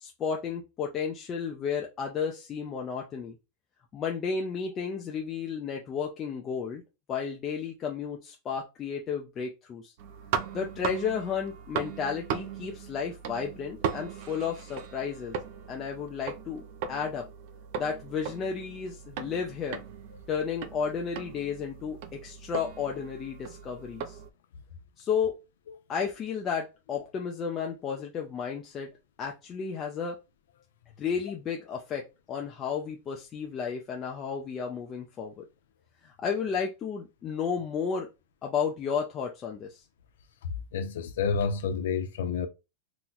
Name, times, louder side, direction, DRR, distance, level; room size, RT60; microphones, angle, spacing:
voice 1, 0.0-3.3 3.9-6.8 7.1-9.9 10.5-15.4 15.7-17.3 17.7-19.8 20.3-24.2 25.0-25.4 25.9-28.9 29.2-30.2 31.0-35.5 36.0-38.1 38.4-39.8, left 6 dB, 20° left, 0.4 m, -33 dB
sound 1, 10.0-24.3, right 7 dB, 45° right, 0.4 m, -38 dB
voice 2, 40.7-42.5, left 5 dB, 85° left, 0.5 m, -29 dB
2.9 x 2.1 x 3.9 m
supercardioid pair, 170°, 0 cm